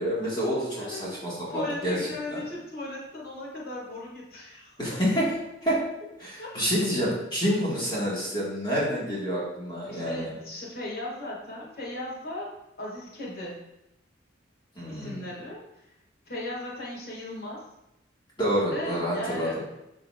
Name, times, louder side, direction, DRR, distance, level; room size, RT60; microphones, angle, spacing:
voice 1, 0.0-2.4 4.8-5.3 5.6-5.8 6.2-10.3 14.7-15.2 18.4-19.5, equal, 25° left, -6 dB, 1.6 m, -28 dB
voice 2, 0.8-1.1 1.5-5.0 6.4-6.5 9.9-12.5 12.8-13.6 14.9-15.6 16.3-17.6 18.7-19.6, left 1 dB, 50° left, -5 dB, 1.8 m, -37 dB
11.5 x 3.8 x 2.4 m, 0.85 s
head